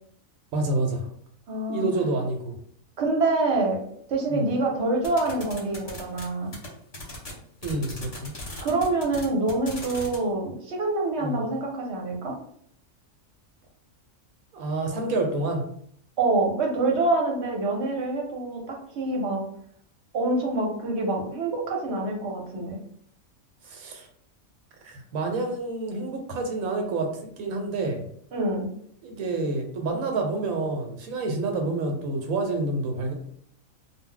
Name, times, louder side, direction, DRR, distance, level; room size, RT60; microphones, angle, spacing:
voice 1, 0.5-1.1 1.7-2.6 4.3-4.4 7.6-8.3 11.2-11.4 14.5-15.6 23.6-24.1 24.8-27.1 27.4-28.0 29.0-33.1, right 2 dB, 80° right, 3 dB, 1.0 m, -28 dB
voice 2, 1.5-1.9 3.0-3.8 4.1-6.5 8.6-12.3 16.2-19.4 20.1-22.8 28.3-28.7, right 2 dB, 60° right, 0 dB, 0.9 m, -26 dB
sound 1, 5.0-6.2 6.5-6.7 6.9-7.3 7.6-10.2, left 2 dB, 35° left, 0.8 m, -37 dB
2.3 x 2.0 x 3.7 m, 0.65 s
omnidirectional pair, 1.5 m